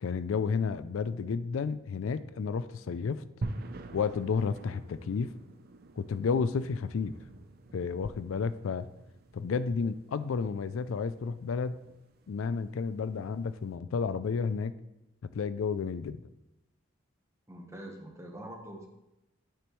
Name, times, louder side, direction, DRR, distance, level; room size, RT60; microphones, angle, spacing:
voice 1, 0.0-3.2 3.9-5.3 6.0-7.1 7.7-8.9 9.3-11.8 12.3-14.7 15.3-16.2, left 5 dB, 80° left, 14 dB, 0.4 m, -31 dB
sound 1, 3.4-13.7, right 2 dB, 50° right, 0.5 m, -46 dB
voice 2, 17.5-18.9, right 1 dB, 15° right, 2 dB, 1.0 m, -44 dB
8.9 x 6.6 x 3.1 m, 0.94 s
head